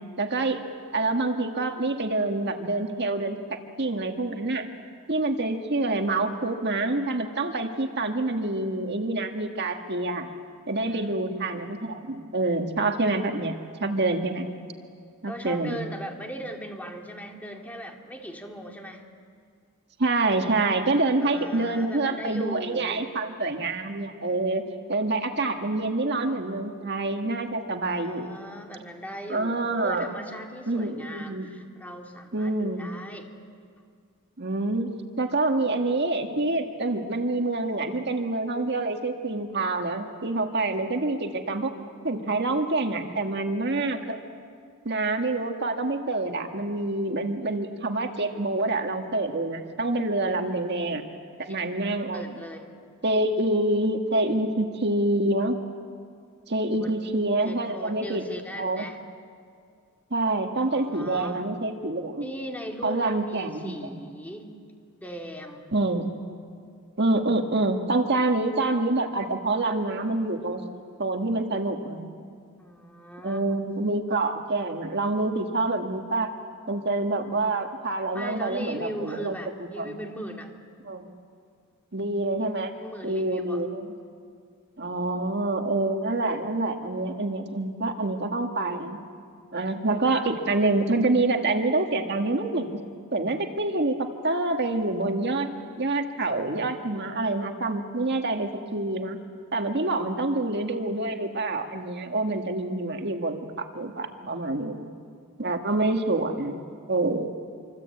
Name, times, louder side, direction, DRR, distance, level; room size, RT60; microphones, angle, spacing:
voice 1, 0.2-0.6 0.9-4.7 5.1-10.3 10.7-13.5 13.8-14.5 15.2-15.8 20.0-24.6 24.9-28.3 29.3-30.1 30.7-31.5 32.3-32.9 34.4-41.7 42.0-44.2 44.9-51.0 51.4-52.2 53.0-55.6 56.5-58.2 58.6-58.8 60.1-62.3 62.8-64.0 65.7-66.1 67.0-70.6 71.0-72.1 73.2-76.3 76.7-80.0 80.9-81.1 81.9-82.7 83.0-83.9 84.8-89.0 89.5-92.8 93.1-99.2 99.5-104.9 105.4-106.6 106.9-107.3, right 2 dB, 50° right, 4 dB, 1.8 m, -27 dB
voice 2, 10.9-11.2 15.3-19.0 21.2-23.1 27.8-33.3 51.3-51.7 52.1-52.7 56.7-56.9 57.4-59.0 60.7-61.4 62.2-64.5 64.9-65.7 72.6-73.7 78.1-80.5 82.7-83.6, equal, 10° left, 2 dB, 2.5 m, -39 dB
26.5 x 25.0 x 8.6 m, 2.2 s
head